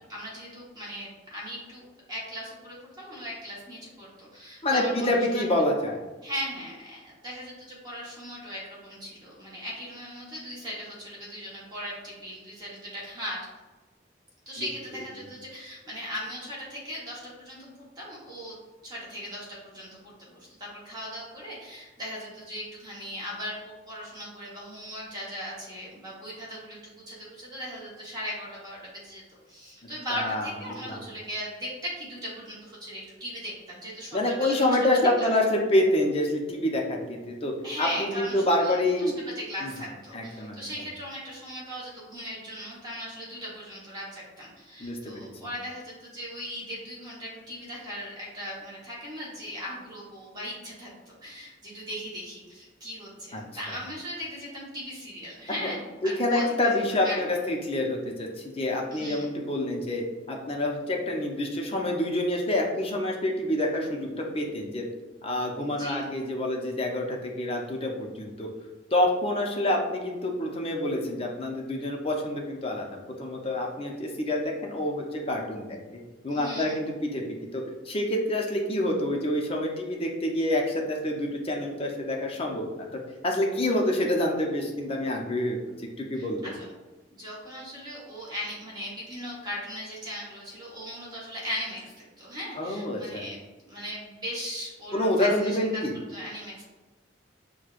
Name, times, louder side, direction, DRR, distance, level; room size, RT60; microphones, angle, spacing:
voice 1, 0.0-5.4 6.2-13.4 14.5-18.6 18.8-29.2 29.5-34.8 35.2-35.3 37.6-56.8 57.0-57.2 58.9-59.3 65.6-66.1 76.3-76.8 86.1-86.7 87.1-93.4 93.7-95.8 96.1-96.6, equal, 20° right, -6 dB, 1.0 m, -38 dB
voice 2, 4.6-6.0 14.6-14.7 30.1-30.5 30.9-31.0 34.1-37.5 37.8-39.2 39.6-39.7 40.1-40.6 44.8-45.3 53.3-53.4 56.0-64.1 64.3-64.8 65.2-68.5 68.9-72.9 73.2-75.8 76.2-82.9 83.2-85.6 86.0-86.5 92.6-93.3 94.9-96.0, left 1 dB, 30° left, 0 dB, 0.6 m, -27 dB
6.1 x 2.2 x 2.4 m, 1.2 s
head